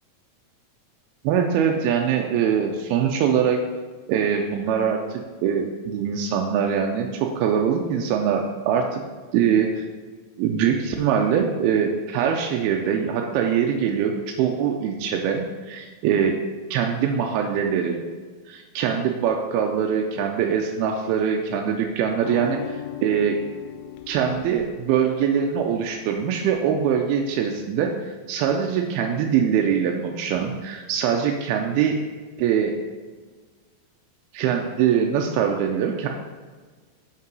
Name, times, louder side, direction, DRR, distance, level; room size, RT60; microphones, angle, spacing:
voice 1, 1.2-3.6 4.1-9.0 9.3-9.8 10.4-16.4 16.7-18.0 18.5-23.4 24.1-32.0 32.4-32.8 34.3-36.1, right 7 dB, 90° right, 2 dB, 2.5 m, -23 dB
sound 1, 22.2-25.0 26.5-26.6, left 12 dB, 85° left, 2.5 m, -37 dB
6.8 x 5.4 x 5.3 m, 1.4 s
omnidirectional pair, 4.3 m